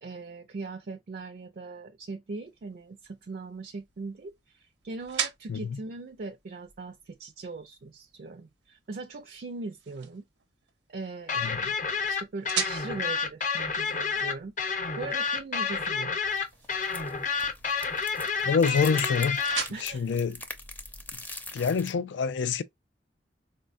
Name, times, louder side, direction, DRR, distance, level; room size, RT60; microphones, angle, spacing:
voice 1, 0.0-10.2 10.9-14.5 15.0-16.2 19.7-20.1 21.5-21.7, right 3 dB, 55° right, 0.4 m, -40 dB
sound 1, 2.4-21.3, right 8 dB, 85° right, 0.7 m, -42 dB
sound 2, 11.3-19.6, left 5 dB, 45° left, 0.7 m, -29 dB
sound 3, 16.2-21.9, left 2 dB, 10° left, 0.5 m, -43 dB
voice 2, 18.4-19.4 19.8-20.4 21.5-22.6, left 5 dB, 85° left, 0.4 m, -26 dB
4.1 x 2.2 x 2.4 m
head